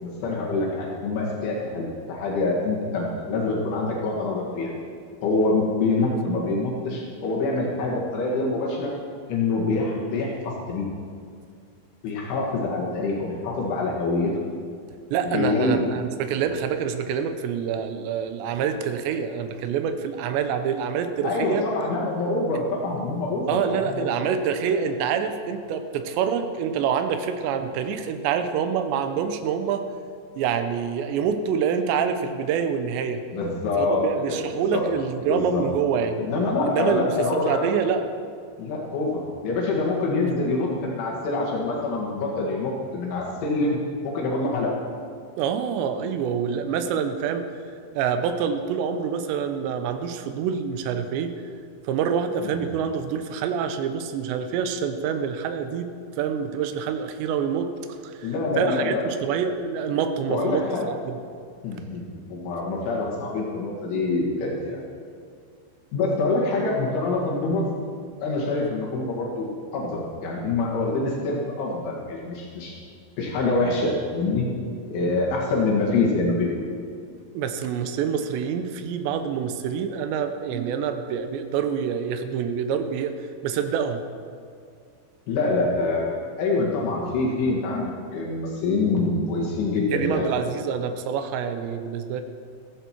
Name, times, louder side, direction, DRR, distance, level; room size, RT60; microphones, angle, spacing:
voice 1, 0.0-4.7 5.2-8.9 9.3-10.9 12.0-14.3 15.3-15.9 21.2-24.1 24.7-24.9 33.3-34.4 34.7-34.8 35.3-35.7 36.2-37.7 38.6-43.8 44.0-44.8 52.5-52.6 58.2-59.0 60.3-60.9 61.6-64.8 65.9-67.7 68.2-72.7 73.2-74.5 74.9-76.7 80.5-80.6 85.3-90.3, left 3 dB, 70° left, -3 dB, 4.2 m, -25 dB
voice 2, 15.1-21.7 23.5-29.8 30.4-33.2 33.8-36.2 36.7-37.1 37.5-38.1 45.4-47.5 47.9-51.3 51.8-55.9 56.2-57.7 58.0-60.7 61.1-61.2 77.3-83.1 83.4-84.0 89.9-92.2, right 7 dB, 80° right, 8 dB, 2.6 m, -26 dB
16.0 x 15.5 x 4.5 m, 2.2 s
omnidirectional pair, 5.9 m